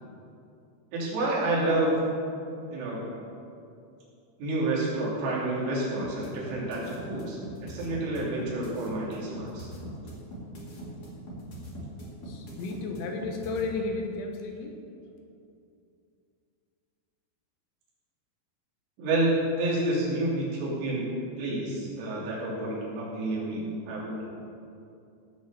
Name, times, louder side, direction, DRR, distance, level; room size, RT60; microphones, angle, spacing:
voice 1, 0.9-2.0 2.7-3.0 4.4-9.7 19.0-21.1 21.4-24.3, right 2 dB, 70° right, -6 dB, 5.4 m, -29 dB
sound 1, 6.0-13.6, right 1 dB, 45° left, 1.3 m, -41 dB
voice 2, 12.2-14.7, left 3 dB, 75° left, 3 dB, 3.3 m, -33 dB
16.5 x 6.3 x 6.9 m, 2.5 s
omnidirectional pair, 5.8 m